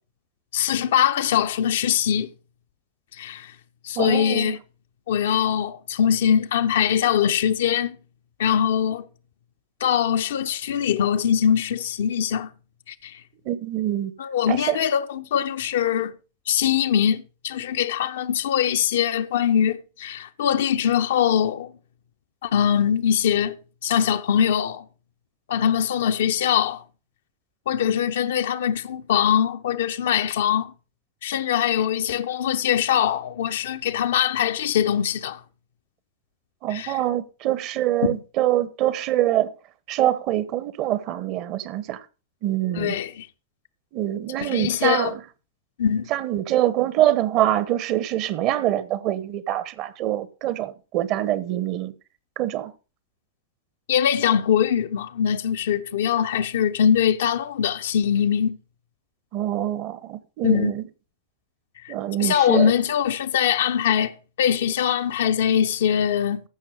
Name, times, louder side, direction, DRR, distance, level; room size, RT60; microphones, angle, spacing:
voice 1, 0.5-2.3 3.2-3.5 3.8-4.6 5.1-8.0 8.4-9.1 9.8-12.5 12.9-13.2 14.2-16.1 16.5-21.7 22.4-23.6 23.8-24.9 25.5-26.8 27.7-30.7 31.2-35.4 36.7-37.0 38.0-38.2 42.8-43.3 44.4-45.1 45.8-46.1 53.9-58.6 60.4-60.7 61.8-61.9 62.2-66.4, left 9 dB, 60° left, 0.8 m, -22 dB
voice 2, 4.0-4.5 13.4-14.1 14.5-14.8 36.6-39.5 39.9-42.0 42.4-42.9 43.9-45.2 46.1-51.9 52.4-52.7 59.3-60.8 61.9-62.7, right 13 dB, 40° right, 1.0 m, -24 dB
15.0 x 6.0 x 5.0 m
figure-of-eight pair, 90°, 0 cm